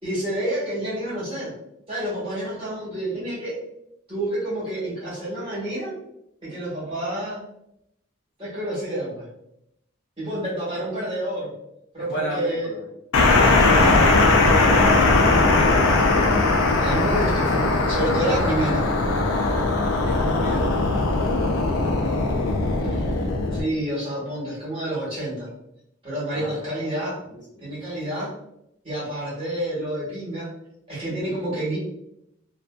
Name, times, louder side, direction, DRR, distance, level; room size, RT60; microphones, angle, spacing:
voice 1, 0.0-1.5 1.9-3.6 4.1-5.9 6.4-7.4 8.4-9.3 10.2-11.5 11.9-12.7 13.6-14.8 16.8-18.8 22.8-23.1 23.5-25.5 26.0-27.2 27.6-28.3 28.8-30.5 30.9-31.8, right 1 dB, 25° right, -9 dB, 1.4 m, -29 dB
voice 2, 12.0-12.9 15.1-15.9 20.0-20.8 26.3-26.9 27.3-27.8, equal, 55° left, -6 dB, 1.1 m, -33 dB
sound 1, 13.1-23.6, left 3 dB, 80° left, 0.5 m, -19 dB
2.6 x 2.5 x 2.2 m, 0.80 s
head